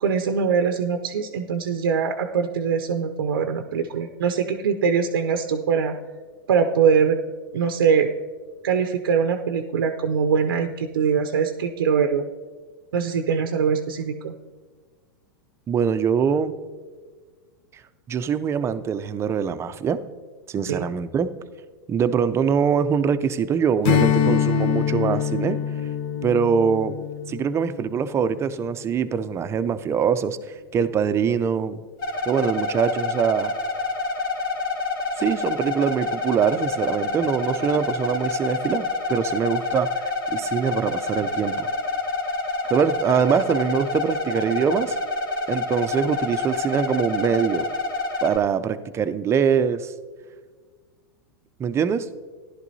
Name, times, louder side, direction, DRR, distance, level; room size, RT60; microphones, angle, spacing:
voice 1, 0.0-5.9 6.5-7.2 7.5-8.1 8.6-12.3 12.9-14.3 20.7-20.8, right 6 dB, 85° right, 6 dB, 0.6 m, -22 dB
voice 2, 15.7-16.6 18.1-20.0 20.5-21.3 21.9-25.6 26.2-27.0 27.3-30.4 30.7-31.8 32.3-33.5 35.2-41.7 42.6-45.0 45.5-47.7 48.2-49.9 51.6-52.1, right 7 dB, 25° right, 11 dB, 0.5 m, -23 dB
Strum, 23.8-28.6, left 8 dB, 50° left, 0.7 m, -24 dB
sound 1, 32.0-48.4, left 3 dB, 65° left, 2.2 m, -27 dB
14.5 x 11.0 x 2.7 m, 1.5 s
hypercardioid pair, 110°, 12 cm